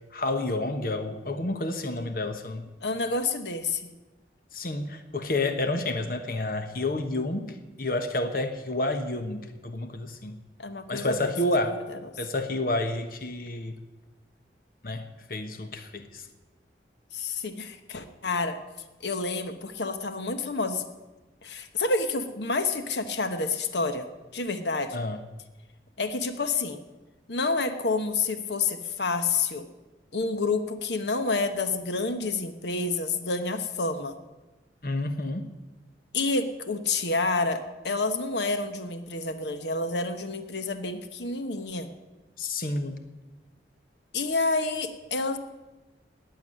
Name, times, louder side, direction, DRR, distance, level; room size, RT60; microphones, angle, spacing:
voice 1, 0.1-2.7 4.5-10.4 10.9-11.8 12.2-13.8 14.8-16.2 24.9-25.2 34.8-35.5 42.4-43.0, left 2 dB, 50° left, 8 dB, 1.1 m, -30 dB
voice 2, 2.8-3.9 10.6-12.0 17.1-18.6 19.0-20.8 21.4-24.1 24.3-25.0 26.0-26.8 27.3-29.7 30.1-34.1 36.1-41.9 44.1-45.4, left 3 dB, 80° left, 9 dB, 1.2 m, -29 dB
18.5 x 7.1 x 9.8 m, 1.1 s
head